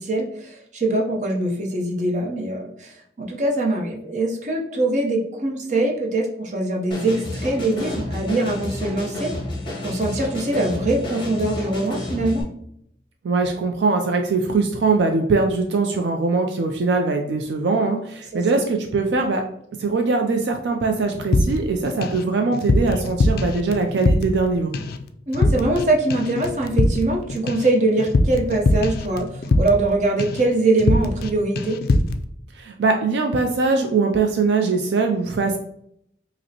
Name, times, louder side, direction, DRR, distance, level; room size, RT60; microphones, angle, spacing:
voice 1, 0.0-9.3 9.8-12.4 18.3-18.6 25.3-31.8, right 2 dB, 40° right, 0 dB, 0.7 m, -23 dB
sound 1, 6.9-12.4, left 1 dB, 25° left, 0.9 m, -30 dB
voice 2, 13.2-19.4 19.8-24.7 32.5-35.6, right 3 dB, 75° right, 3 dB, 0.4 m, -21 dB
sound 2, 21.3-22.2 22.5-24.5 24.7-25.0 25.3-25.8 26.1-29.9 30.2-30.5 30.8-31.3 31.6-32.2, left 2 dB, 55° left, 0.3 m, -21 dB
5.1 x 2.0 x 2.8 m, 0.71 s
head